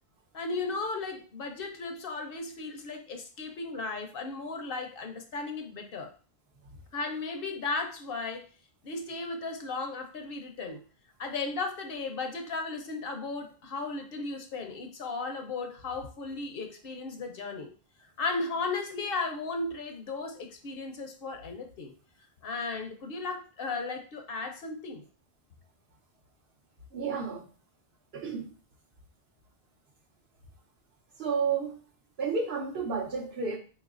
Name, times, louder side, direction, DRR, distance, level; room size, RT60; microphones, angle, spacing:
voice 1, 0.3-6.1 6.9-8.5 8.8-10.8 11.2-17.7 18.2-21.9 22.4-25.0, left 3 dB, 65° left, 5 dB, 0.8 m, -35 dB
voice 2, 26.9-27.5 28.1-28.5 31.2-31.8 32.2-33.6, right 5 dB, 70° right, 0 dB, 1.1 m, -31 dB
4.4 x 3.1 x 2.4 m, 0.37 s
omnidirectional pair, 1.1 m